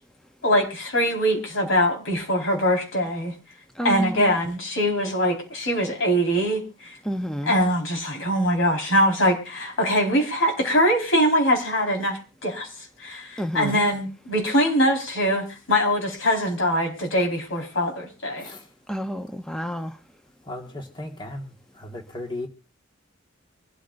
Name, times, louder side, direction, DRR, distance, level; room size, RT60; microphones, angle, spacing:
voice 1, 0.4-3.3 3.8-7.0 7.4-12.7 13.0-18.5, equal, 85° left, 4.5 m, -23 dB
voice 2, 3.7-4.4 7.0-7.6 13.4-13.8 18.9-20.0, equal, 5° left, 0.7 m, -30 dB
voice 3, 18.4-18.7 20.4-22.5, left 1 dB, 25° left, 1.7 m, -36 dB
24.5 x 13.5 x 2.6 m
head